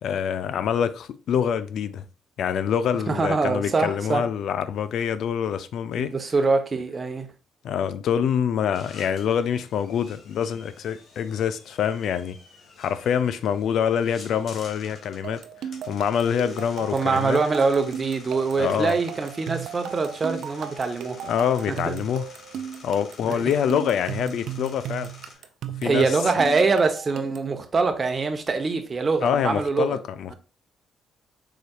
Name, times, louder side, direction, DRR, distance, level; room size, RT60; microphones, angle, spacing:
voice 1, 0.0-2.0 2.4-6.1 7.6-12.4 12.8-15.4 15.9-17.4 18.6-19.0 21.2-22.3 22.8-25.1 25.8-26.2 29.2-30.3, left 8 dB, 70° left, 0.4 m, -25 dB
voice 2, 3.1-4.2 6.0-7.3 16.9-21.2 21.7-21.9 23.2-23.4 25.8-30.0, right 4 dB, 35° right, 0.9 m, -24 dB
sound 1, 8.7-25.3, left 3 dB, 55° left, 1.3 m, -48 dB
sound 2, 15.2-27.5, right 10 dB, 75° right, 0.4 m, -36 dB
4.9 x 4.0 x 2.3 m
cardioid pair, 90°, 0 cm